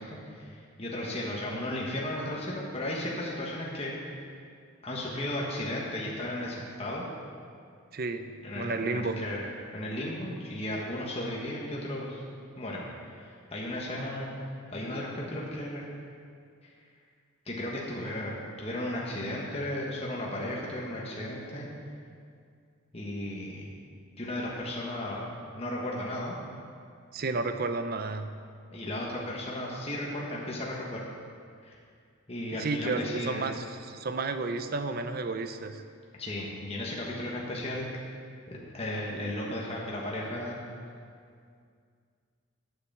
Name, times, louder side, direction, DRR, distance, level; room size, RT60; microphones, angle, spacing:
voice 1, 0.0-4.3 4.8-7.0 8.4-9.4 9.7-12.2 12.6-14.4 14.7-15.8 17.4-21.7 22.9-23.6 24.2-25.2 25.5-26.4 28.7-31.0 31.6-31.8 32.3-33.4 36.2-37.9 38.5-40.6, left 1 dB, 30° left, -4 dB, 1.3 m, -35 dB
voice 2, 7.9-9.2 27.1-28.3 32.5-35.8, right 3 dB, 45° right, 9 dB, 0.6 m, -32 dB
8.8 x 7.9 x 7.1 m, 2.2 s
head